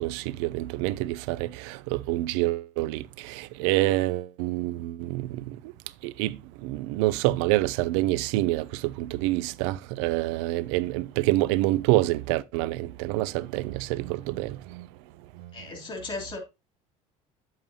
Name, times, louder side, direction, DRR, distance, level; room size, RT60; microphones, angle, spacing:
voice 1, 0.0-1.4 1.9-3.0 3.6-5.3 6.2-6.4 6.6-8.6 9.1-14.5, right 17 dB, 90° right, 0.5 m, -26 dB
voice 2, 15.5-16.4, left 3 dB, 35° left, 2.9 m, -36 dB
8.7 x 7.7 x 2.8 m
cardioid pair, 125°, 14 cm